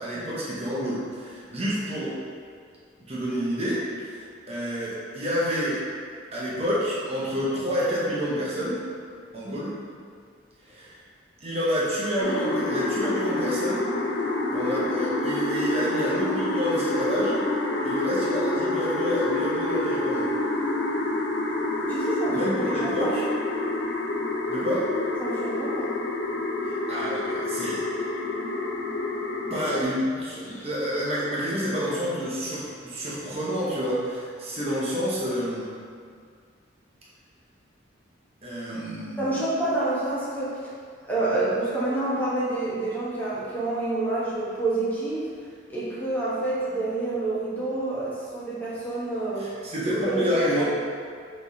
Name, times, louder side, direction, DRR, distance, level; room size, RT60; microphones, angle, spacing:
voice 1, 0.0-2.2 3.1-5.8 6.3-8.8 9.3-9.8 10.7-11.0 11.4-13.8 14.5-17.4 17.8-20.3 22.3-23.2 24.5-24.9 26.6-28.1 29.5-35.7 38.4-39.3 49.4-50.6, equal, 30° right, -8 dB, 0.9 m, -28 dB
sound 1, 12.2-29.8, left 2 dB, 60° left, 0.5 m, -27 dB
voice 2, 21.6-23.1 25.2-25.9 30.4-30.7 39.2-40.7 41.1-45.3 45.7-49.5 49.9-50.3 50.6-50.7, right 2 dB, 10° left, -9 dB, 0.9 m, -28 dB
6.0 x 3.1 x 2.7 m, 2.1 s
head